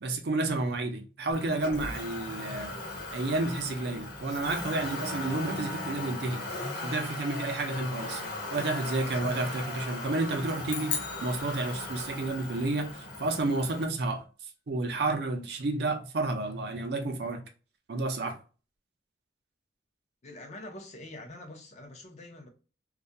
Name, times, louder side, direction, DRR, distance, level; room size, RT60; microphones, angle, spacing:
voice 1, 0.0-2.8 3.1-6.5 6.8-8.2 8.5-14.2 14.7-17.4 17.9-18.4, right 2 dB, 65° right, 0.5 m, -31 dB
Motor vehicle (road), 1.3-13.8, left 2 dB, 60° left, 1.0 m, -38 dB
sound 1, 10.7-12.3, left 7 dB, 85° left, 0.5 m, -37 dB
voice 2, 20.2-22.5, left 1 dB, 40° left, 0.5 m, -45 dB
2.3 x 2.1 x 2.6 m
head